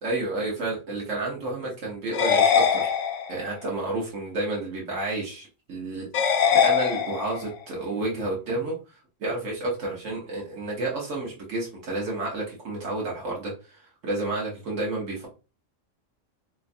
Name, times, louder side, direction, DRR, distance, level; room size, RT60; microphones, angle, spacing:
voice 1, 0.0-2.9 3.3-15.3, right 2 dB, 75° right, -3 dB, 1.4 m, -31 dB
sound 1, 2.1-3.5 6.1-7.5, left 7 dB, 75° left, 0.9 m, -22 dB
3.8 x 3.1 x 2.5 m, 0.32 s
omnidirectional pair, 1.3 m